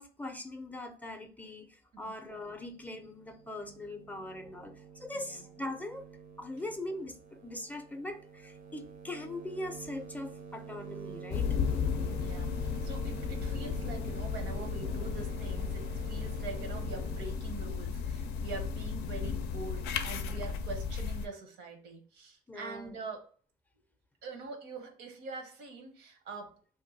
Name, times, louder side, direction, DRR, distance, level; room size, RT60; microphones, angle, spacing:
voice 1, 0.0-6.1 6.4-11.6 22.5-23.0, left 1 dB, 10° left, 6 dB, 0.4 m, -41 dB
sound 1, 2.3-17.3, right 6 dB, 55° right, 0.5 m, -48 dB
voice 2, 5.1-5.4 6.6-6.8 12.1-23.3 24.2-26.6, right 4 dB, 90° right, 5 dB, 0.9 m, -44 dB
sound 2, 11.3-21.3, left 6 dB, 80° left, 0.4 m, -34 dB
2.7 x 2.2 x 3.9 m, 0.42 s
cardioid pair, 110°, 17 cm